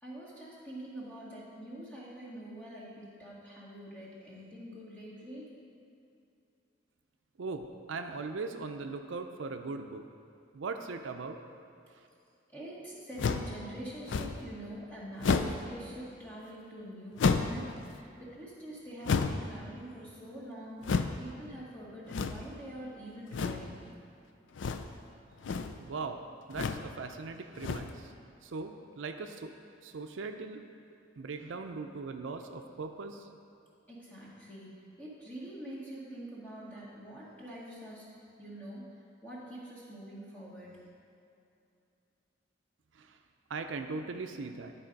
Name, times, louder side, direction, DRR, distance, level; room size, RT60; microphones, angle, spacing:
voice 1, 0.0-5.5 12.5-20.8 21.2-24.0 33.9-38.1 38.4-38.9 39.2-40.9, right 1 dB, 10° left, -7 dB, 1.9 m, -45 dB
voice 2, 7.4-10.0 10.5-11.4 11.9-12.0 25.8-26.2 26.5-28.1 28.4-29.5 29.8-30.6 31.2-33.3 42.9-43.2 43.5-44.7, right 4 dB, 80° right, 6 dB, 0.5 m, -39 dB
sound 1, 13.2-13.5 14.1-14.5 15.2-15.7 17.2-17.6 19.0-19.5 20.8-21.2 22.1-22.5 23.3-23.7 24.5-25.0 25.3-25.8 26.5-26.9 27.5-28.0, left 4 dB, 75° left, 0.4 m, -31 dB
11.5 x 4.2 x 5.2 m, 2.7 s
head